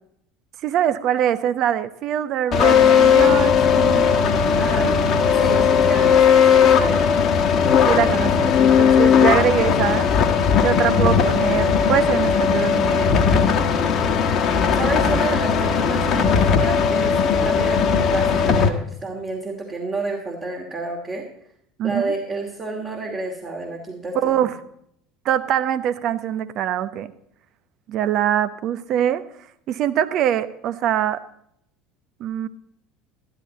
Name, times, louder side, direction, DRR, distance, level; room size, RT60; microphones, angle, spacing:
voice 1, 0.6-4.1 7.8-10.1 10.6-13.1 21.8-22.1 24.1-24.6 25.2-27.1 27.9-29.2 29.7-31.2 32.2-32.5, right 10 dB, 50° right, 12 dB, 0.8 m, -23 dB
sound 1, 2.5-18.7, left 7 dB, 45° left, 1.3 m, -17 dB
voice 2, 4.5-4.9 5.3-7.1 14.7-21.3 21.8-24.5, right 2 dB, 30° right, -1 dB, 2.5 m, -29 dB
12.5 x 12.5 x 4.1 m, 0.70 s
figure-of-eight pair, 70°, 0 cm